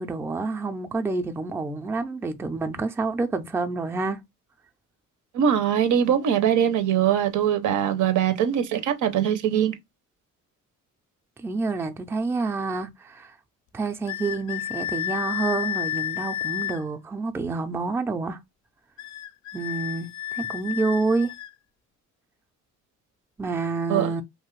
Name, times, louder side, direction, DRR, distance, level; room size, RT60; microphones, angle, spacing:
voice 1, 0.0-4.2 11.4-13.3 13.7-18.4 19.5-21.3 23.4-24.2, right 3 dB, 10° right, 0.3 m, -28 dB
voice 2, 5.3-9.7 23.9-24.1, right 9 dB, 75° right, 0.6 m, -22 dB
sound 1, 14.1-16.8 19.0-21.5, left 11 dB, 70° left, 0.4 m, -31 dB
2.7 x 2.4 x 3.0 m
cardioid pair, 90°, 30 cm